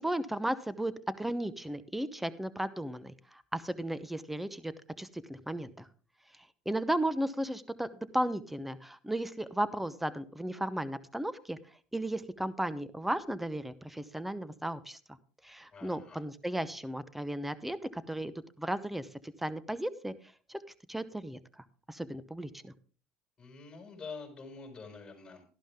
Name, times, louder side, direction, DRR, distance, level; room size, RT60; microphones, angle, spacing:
voice 1, 0.0-5.9 6.6-7.9 8.1-11.6 11.9-15.2 15.4-20.1 20.5-20.6 20.9-22.7, right 1 dB, 5° right, 16 dB, 0.9 m, -35 dB
voice 2, 15.7-16.2 23.4-25.5, left 4 dB, 20° left, 2 dB, 5.7 m, -46 dB
12.0 x 11.5 x 3.7 m, 0.40 s
supercardioid pair, 80°, 3 cm